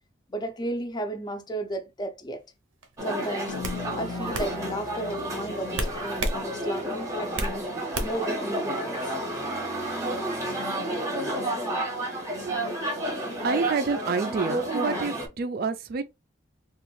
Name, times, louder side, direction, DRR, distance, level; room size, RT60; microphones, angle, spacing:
voice 1, 0.3-2.4 3.0-3.6 4.0-7.7 8.0-9.1, right 1 dB, 20° left, 0.4 m, -34 dB
sound 1, 2.8-3.0 3.6-3.8 4.3-4.5 5.7-6.4 6.8-7.6 7.9-8.3, right 2 dB, 90° right, 0.6 m, -29 dB
sound 2, 3.0-15.3, right 1 dB, 15° right, 0.7 m, -31 dB
sound 3, 3.5-8.0, left 5 dB, 75° left, 0.4 m, -41 dB
voice 2, 13.4-16.0, right 4 dB, 50° right, 0.3 m, -28 dB
3.0 x 2.4 x 3.1 m
head